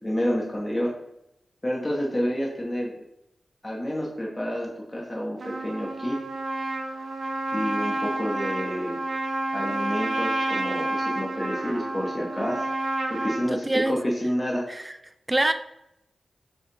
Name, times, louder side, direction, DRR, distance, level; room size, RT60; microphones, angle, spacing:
voice 1, 0.0-0.9 1.6-3.0 3.6-6.2 7.5-9.0 9.5-12.7 13.1-14.7, equal, 20° left, -3 dB, 1.1 m, -29 dB
Trumpet, 5.4-13.5, right 2 dB, 65° right, 0.7 m, -29 dB
voice 2, 13.7-14.0 14.7-14.9 15.3-15.5, right 1 dB, 20° right, 10 dB, 0.3 m, -24 dB
5.4 x 3.2 x 2.9 m, 0.84 s
cardioid pair, 60°, 0 cm